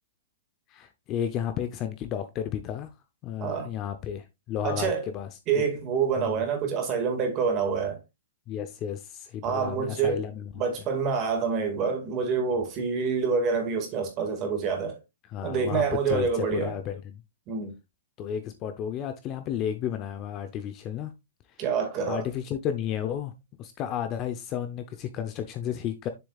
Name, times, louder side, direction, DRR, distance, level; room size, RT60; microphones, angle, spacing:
voice 1, 0.7-2.9 3.2-5.3 5.6-5.7 6.2-6.4 8.5-10.5 10.8-10.9 15.3-17.2 18.2-21.1 21.5-21.6 22.1-23.3 23.6-26.1, left 9 dB, 25° left, 0.7 m, -32 dB
voice 2, 3.4-3.7 4.6-5.1 5.5-8.0 9.4-10.2 10.6-15.0 15.4-16.7 17.5-17.8 21.6-22.2, right 5 dB, 25° right, 2.0 m, -27 dB
7.0 x 6.8 x 2.4 m
hypercardioid pair, 160°, 0 cm